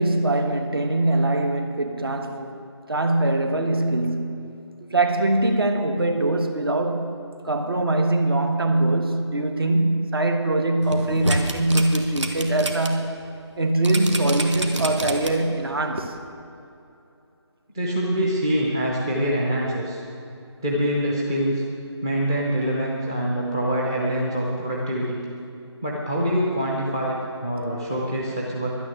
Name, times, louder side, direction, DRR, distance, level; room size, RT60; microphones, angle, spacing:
voice 1, 0.0-2.6 2.9-4.5 4.9-13.2 13.6-16.2, right 2 dB, 55° right, 6 dB, 1.4 m, -22 dB
sound 1, 10.8-12.9 13.3-13.4 13.8-15.5 15.9-16.0, right 1 dB, 85° right, 1.7 m, -28 dB
voice 2, 17.7-20.0 20.6-21.6 22.0-25.2 25.8-28.8, equal, 10° right, -4 dB, 0.7 m, -25 dB
11.5 x 9.7 x 7.4 m, 2.7 s
figure-of-eight pair, 165°, 15 cm